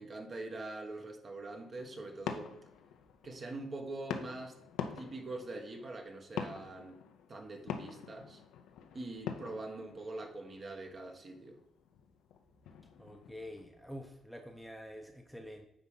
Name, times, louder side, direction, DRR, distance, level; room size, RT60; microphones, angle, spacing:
voice 1, 0.0-2.5 3.2-4.6 4.9-7.0 7.3-8.4 8.9-11.6, right 2 dB, 40° right, 4 dB, 1.4 m, -43 dB
sound 1, 1.5-13.6, left 8 dB, 90° left, 0.7 m, -46 dB
voice 2, 13.0-15.7, equal, ahead, 4 dB, 0.8 m, -47 dB
9.5 x 3.6 x 5.5 m, 0.86 s
cardioid pair, 90°, 0 cm